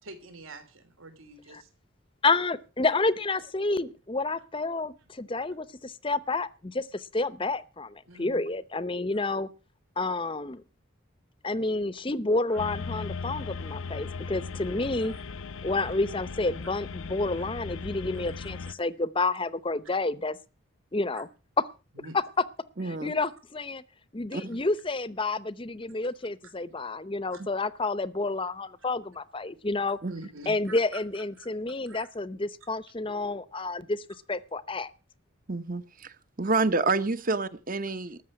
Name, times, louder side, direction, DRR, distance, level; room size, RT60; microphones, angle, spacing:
voice 1, 0.0-1.7 8.1-8.4 9.1-9.2 12.5-12.6 15.0-15.3 15.9-16.0 17.3-17.4 18.7-18.8 21.1-21.2 21.9-22.2 27.3-27.4 30.1-31.5 31.8-32.1, right 3 dB, 75° right, 3.0 m, -46 dB
voice 2, 2.2-9.5 10.0-10.6 11.4-15.1 15.6-20.4 20.9-21.3 22.8-23.8 24.1-30.0 30.5-34.9, left 3 dB, 25° left, 0.7 m, -30 dB
sound 1, 12.6-18.7, left 4 dB, 70° left, 0.7 m, -37 dB
voice 3, 22.8-23.1 24.3-24.6 30.0-30.1 35.5-38.2, right 3 dB, 40° right, 1.0 m, -28 dB
13.5 x 6.7 x 9.7 m
head